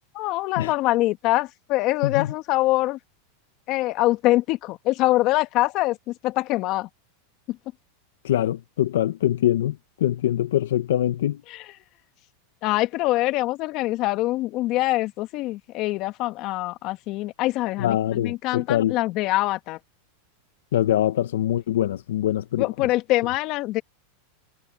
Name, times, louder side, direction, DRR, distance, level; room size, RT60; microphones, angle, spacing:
voice 1, 0.1-3.0 3.7-6.9 7.5-7.6 11.5-11.6 12.6-19.8 22.6-23.8, left 18 dB, 50° left, 1.6 m, -24 dB
voice 2, 8.2-11.4 17.8-19.0 20.7-22.9, left 12 dB, 80° left, 1.3 m, -23 dB
hypercardioid pair, 120°, 0 cm